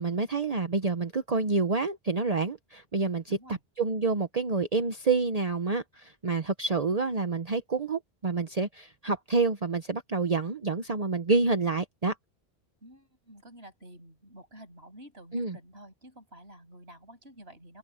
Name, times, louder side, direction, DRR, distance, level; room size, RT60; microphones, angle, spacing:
voice 1, 0.0-3.2 3.8-12.1 15.3-15.6, right 4 dB, 40° right, 1.0 m, -28 dB
voice 2, 3.3-3.6 12.8-17.8, right 1 dB, 75° right, 8.1 m, -50 dB
open air
omnidirectional pair, 1.1 m